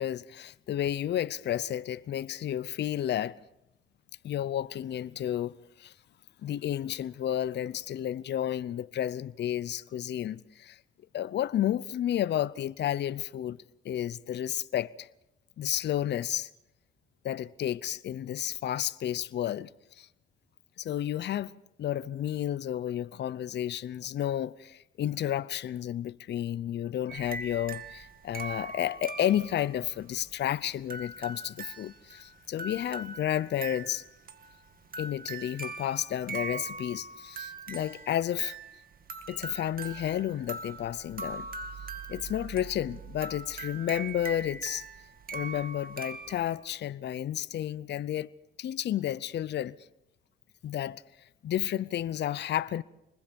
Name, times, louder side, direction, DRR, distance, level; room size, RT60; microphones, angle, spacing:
voice 1, 0.0-3.4 4.2-5.9 6.4-10.8 11.1-13.6 13.8-15.1 15.6-16.5 17.2-19.7 20.0-20.1 20.8-21.5 21.8-34.0 35.0-38.6 39.3-41.5 42.1-44.9 45.3-48.3 48.6-49.8 50.6-51.0 51.4-52.8, left 11 dB, 60° left, 0.7 m, -31 dB
sound 1, 27.1-46.6, right 3 dB, 45° right, 2.0 m, -41 dB
26.0 x 20.5 x 5.3 m
cardioid pair, 90°, 20 cm